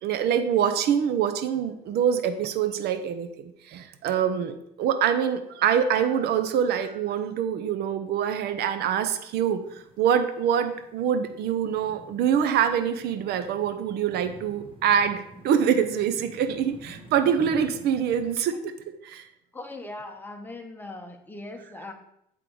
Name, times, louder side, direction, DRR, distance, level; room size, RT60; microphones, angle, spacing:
voice 1, 0.0-18.7 19.0-19.2, right 8 dB, 75° right, 9 dB, 0.7 m, -25 dB
sound 1, 9.6-18.3, right 2 dB, 30° right, 1.6 m, -49 dB
voice 2, 19.5-21.9, left 2 dB, 10° left, 3 dB, 1.1 m, -39 dB
8.4 x 3.8 x 4.7 m, 0.76 s
cardioid pair, 110°, 17 cm